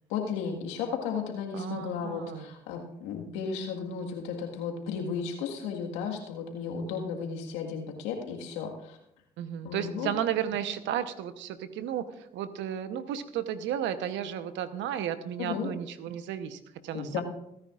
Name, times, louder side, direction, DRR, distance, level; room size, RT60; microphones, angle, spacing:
voice 1, 0.1-9.0 9.6-10.1 15.4-15.7 16.9-17.2, left 6 dB, 85° left, 1 dB, 1.7 m, -34 dB
voice 2, 1.5-2.5 6.8-7.0 9.4-17.2, right 10 dB, 75° right, 11 dB, 1.0 m, -33 dB
28.0 x 9.8 x 2.5 m, 0.79 s
hypercardioid pair, 50°, 19 cm